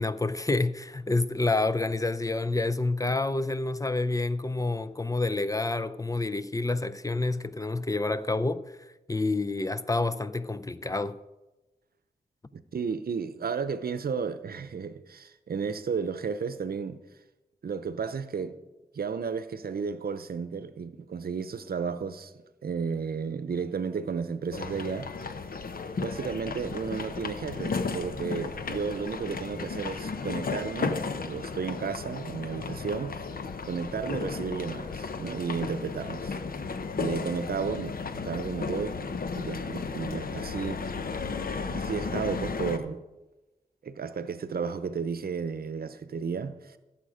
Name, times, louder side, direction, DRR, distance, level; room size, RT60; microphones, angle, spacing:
voice 1, 0.0-8.6 9.1-11.2, left 2 dB, 20° left, 0.5 m, -28 dB
voice 2, 12.5-17.0 17.6-18.5 18.9-22.3 22.6-25.1 26.0-33.2 33.6-36.4 37.0-38.0 38.2-39.0 39.3-40.9 41.7-43.0 43.8-46.8, right 5 dB, 70° right, 0.7 m, -33 dB
sound 1, 24.5-42.8, left 4 dB, 65° left, 0.9 m, -34 dB
16.0 x 7.4 x 5.0 m
wide cardioid pair, 70°, 16 cm